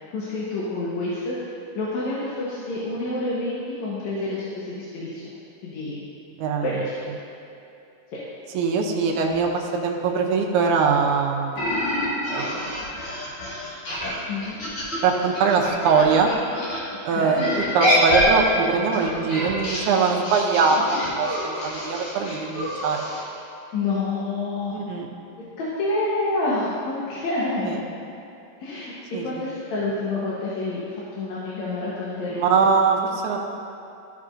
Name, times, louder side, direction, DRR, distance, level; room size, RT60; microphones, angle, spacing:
voice 1, 0.1-1.4 1.8-5.3 5.6-6.0 6.6-6.9 14.3-14.6 17.2-17.5 23.7-24.8 25.6-27.8 28.6-28.9 29.2-32.6, left 2 dB, 70° left, -8 dB, 2.4 m, -28 dB
voice 2, 6.4-6.7 8.5-11.6 12.3-12.6 15.0-16.3 17.1-17.4 17.7-23.0 24.7-25.1 27.7-27.8 29.1-29.3 32.3-33.4, right 5 dB, 85° right, 0 dB, 2.2 m, -22 dB
sound 1, 11.6-16.8 17.4-23.2, left 1 dB, 50° left, 2.4 m, -26 dB
14.0 x 6.5 x 2.6 m, 2.7 s
omnidirectional pair, 3.5 m